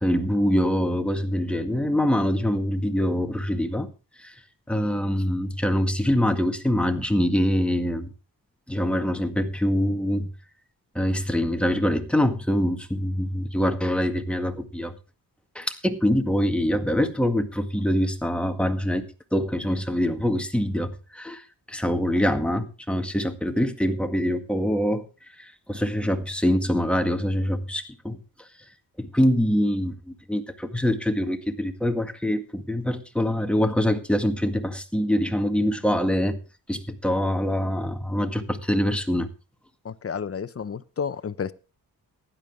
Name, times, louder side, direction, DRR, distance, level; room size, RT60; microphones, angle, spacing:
voice 1, 0.0-3.9 4.2-4.3 4.7-8.1 8.7-10.3 11.0-14.9 15.6-19.0 19.3-25.0 25.4-28.2 29.0-36.4 36.7-39.3, equal, 5° left, 5 dB, 1.9 m, -24 dB
voice 2, 39.8-41.5, left 6 dB, 40° left, 15 dB, 0.8 m, -31 dB
15.5 x 11.0 x 3.6 m, 0.33 s
cardioid pair, 95°, 36 cm